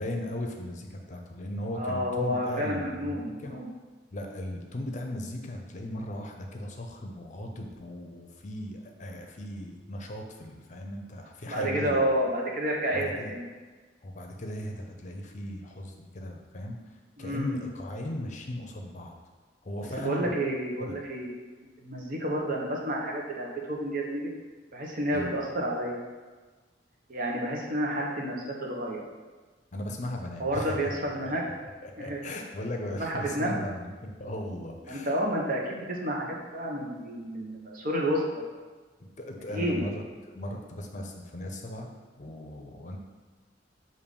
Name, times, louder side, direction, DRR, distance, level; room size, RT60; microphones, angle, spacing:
voice 1, 0.0-3.5 4.1-12.0 12.9-13.3 14.0-16.8 17.2-19.1 19.6-20.3 20.8-21.0 25.1-25.3 29.7-30.8 31.2-31.3 31.8-35.1 39.0-40.0 40.3-41.9 42.2-43.0, left 1 dB, 40° left, 2 dB, 0.7 m, -37 dB
voice 2, 1.7-3.7 11.5-13.5 17.2-17.6 20.0-21.3 21.6-24.3 24.7-26.0 27.1-28.4 28.6-29.0 30.4-31.4 32.0-32.2 33.0-33.6 34.8-38.4 39.5-39.8, right 1 dB, 50° right, -2 dB, 1.1 m, -30 dB
6.8 x 2.7 x 5.3 m, 1.3 s
head